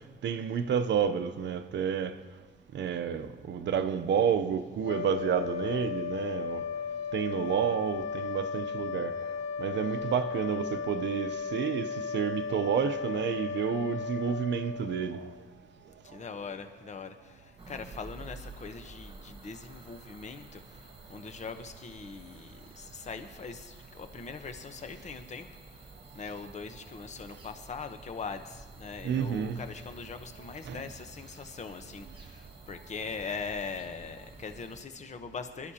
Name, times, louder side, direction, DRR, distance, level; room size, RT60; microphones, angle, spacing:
voice 1, 0.2-2.1 2.7-6.6 7.1-9.1 9.6-15.3 29.0-29.6 30.7-30.8, right 7 dB, 65° right, 0.7 m, -30 dB
sound 1, 4.8-15.4, left 6 dB, 90° left, 0.6 m, -35 dB
voice 2, 16.0-35.7, left 5 dB, 35° left, 1.0 m, -41 dB
sound 2, 17.6-34.8, right 3 dB, 30° right, 1.5 m, -50 dB
21.0 x 12.0 x 2.9 m
cardioid pair, 90°, 20 cm